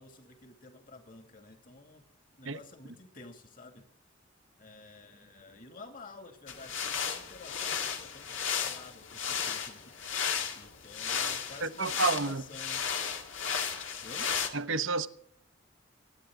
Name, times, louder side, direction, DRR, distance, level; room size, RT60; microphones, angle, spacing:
voice 1, 0.0-2.0 2.4-3.8 4.6-10.2 10.5-12.9 14.0-14.3, left 3 dB, 45° left, 2.4 m, -51 dB
sound 1, 6.5-14.5, left 7 dB, 75° left, 2.0 m, -34 dB
voice 2, 11.6-12.4 14.5-15.1, right 3 dB, 80° right, 0.9 m, -30 dB
23.5 x 9.5 x 3.7 m
head